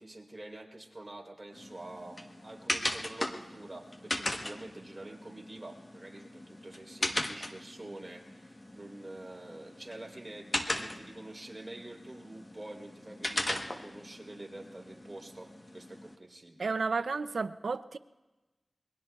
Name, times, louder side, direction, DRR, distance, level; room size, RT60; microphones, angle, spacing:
voice 1, 0.0-15.5 15.7-16.7, right 2 dB, 30° right, 3.5 m, -47 dB
sound 1, 1.5-16.2, left 1 dB, 35° left, 1.1 m, -39 dB
voice 2, 16.6-18.0, right 4 dB, 85° right, 0.4 m, -32 dB
27.5 x 22.0 x 2.3 m
wide cardioid pair, 55°, 0 cm